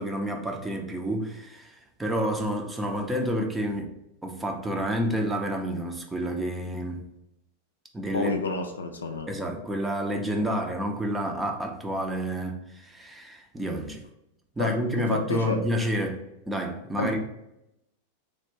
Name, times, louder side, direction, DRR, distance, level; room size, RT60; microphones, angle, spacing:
voice 1, 0.0-3.9 4.2-7.1 7.9-8.3 9.3-14.0 14.6-16.2 16.5-17.2, equal, 10° right, 0.6 m, -29 dB
voice 2, 8.1-9.3 14.6-15.6 17.0-17.2, left 3 dB, 75° left, 0.4 m, -29 dB
3.3 x 2.5 x 4.3 m
figure-of-eight pair, 90°, 0 cm